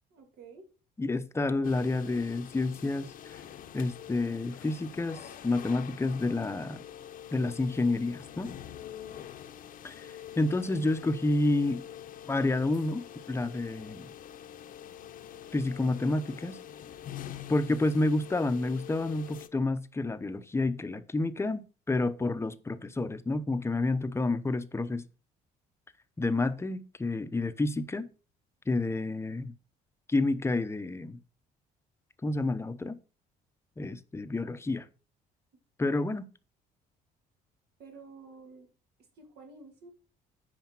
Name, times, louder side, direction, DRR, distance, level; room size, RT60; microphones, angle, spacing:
voice 1, 0.1-0.7 37.8-38.7 39.1-39.9, right 4 dB, 70° right, 2.6 m, -50 dB
voice 2, 1.0-3.4 3.7-6.8 7.3-8.5 9.8-10.1 10.4-11.8 12.3-14.1 15.5-16.6 17.5-25.0 26.2-28.1 28.7-29.5 30.1-31.2 32.2-33.0 33.8-34.9 35.8-36.3, left 2 dB, 15° left, 0.8 m, -29 dB
sound 1, 1.6-19.5, left 10 dB, 55° left, 0.9 m, -45 dB
9.1 x 5.0 x 6.0 m
cardioid pair, 110°, 17 cm